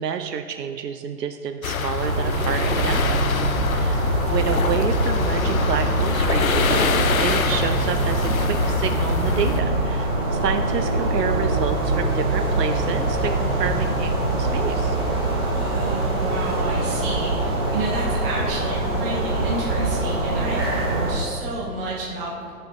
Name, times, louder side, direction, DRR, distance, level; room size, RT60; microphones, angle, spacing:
voice 1, 0.0-3.2 3.7-15.0, right 7 dB, 85° right, 7 dB, 0.5 m, -29 dB
sound 1, 1.6-9.6, left 5 dB, 60° left, 0.6 m, -25 dB
sound 2, 2.0-21.1, right 2 dB, 15° right, 0.6 m, -24 dB
voice 2, 15.5-22.4, right 2 dB, 35° right, -4 dB, 1.0 m, -30 dB
13.0 x 4.4 x 2.6 m, 2.6 s
figure-of-eight pair, 130°, 47 cm